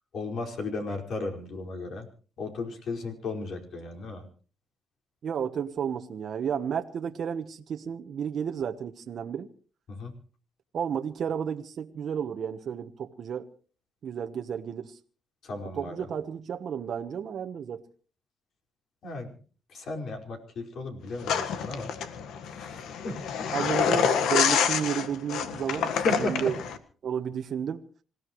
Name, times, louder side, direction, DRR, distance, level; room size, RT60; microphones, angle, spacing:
voice 1, 0.1-2.1 2.4-4.3 9.9-10.1 15.4-16.1 19.0-19.3 19.7-21.9 22.4-23.5 24.1-24.2 25.9-26.5, left 3 dB, 65° left, 2 dB, 4.9 m, -35 dB
voice 2, 5.2-9.5 10.7-13.5 14.0-15.0 15.8-17.8 23.5-26.5 27.0-27.8, right 8 dB, 60° right, 6 dB, 1.1 m, -32 dB
sound 1, 21.2-26.8, left 7 dB, 85° left, 1.5 m, -27 dB
26.5 x 16.5 x 3.1 m, 0.41 s
cardioid pair, 90°, 0 cm